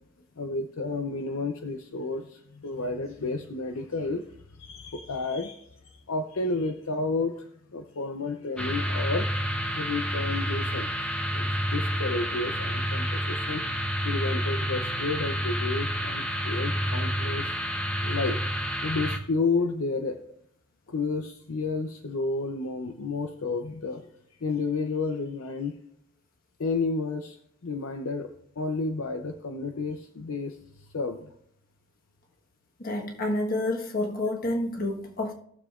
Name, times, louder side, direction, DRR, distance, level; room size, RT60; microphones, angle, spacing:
voice 1, 0.4-4.2 4.5-9.3 9.7-10.9 11.3-13.6 14.0-17.6 18.0-18.4 18.8-20.2 20.9-24.0 24.4-25.8 26.6-27.4 27.6-28.3 28.6-31.3, left 3 dB, 65° left, 6 dB, 0.6 m, -31 dB
sound 1, 8.6-19.2, equal, 5° left, 0.8 m, -29 dB
voice 2, 32.8-35.3, left 1 dB, 40° left, 2 dB, 1.4 m, -29 dB
18.5 x 7.0 x 2.5 m, 0.68 s
head